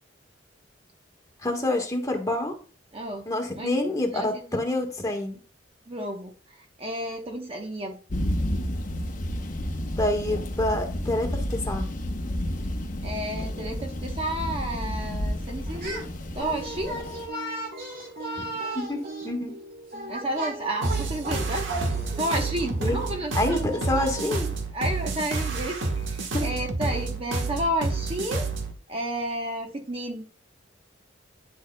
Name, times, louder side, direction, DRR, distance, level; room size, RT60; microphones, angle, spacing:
voice 1, 1.4-2.5 3.3-5.4 10.0-11.9 18.4-18.5 18.7-19.5 22.8-23.0 23.3-24.5 26.3-26.5, left 1 dB, 15° left, 3 dB, 1.3 m, -27 dB
voice 2, 2.9-3.3 3.6-3.7 4.1-4.6 5.9-8.0 13.0-16.1 16.3-17.0 20.1-21.7 22.2-23.3 24.7-28.5 28.9-30.2, right 1 dB, 30° right, 2 dB, 1.0 m, -31 dB
sound 1, 8.1-17.3, left 1 dB, 45° left, 0.8 m, -31 dB
sound 2, 15.6-16.1 16.4-24.4, right 2 dB, 50° right, 2.5 m, -35 dB
sound 3, 20.8-28.7, right 3 dB, 75° right, 1.2 m, -29 dB
9.7 x 6.4 x 2.2 m, 0.38 s
head